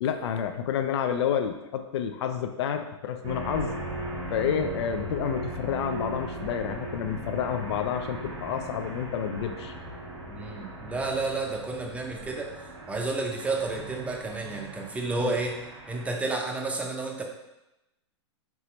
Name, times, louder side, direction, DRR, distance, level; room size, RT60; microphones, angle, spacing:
voice 1, 0.0-3.7 4.3-9.7 15.2-15.3, left 8 dB, 65° left, 8 dB, 0.5 m, -29 dB
sound 1, 3.2-16.1, right 2 dB, 80° right, 1.1 m, -38 dB
voice 2, 10.3-12.5 12.9-15.6 15.9-17.2, right 3 dB, 10° right, 1 dB, 0.6 m, -31 dB
4.7 x 2.9 x 3.0 m, 0.95 s
hypercardioid pair, 115°, 15 cm